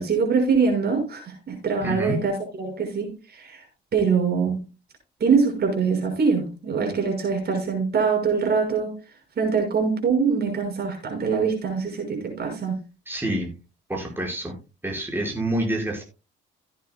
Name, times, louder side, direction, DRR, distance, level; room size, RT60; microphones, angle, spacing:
voice 1, 0.0-3.6 3.9-4.6 5.2-8.9 9.4-12.7, right 5 dB, 55° right, 2 dB, 6.1 m, -23 dB
voice 2, 1.8-2.2 13.1-13.5 13.9-14.5 14.8-16.0, right 1 dB, 10° right, -1 dB, 5.6 m, -27 dB
17.0 x 9.5 x 2.3 m, 0.30 s
cardioid pair, 90°, 20 cm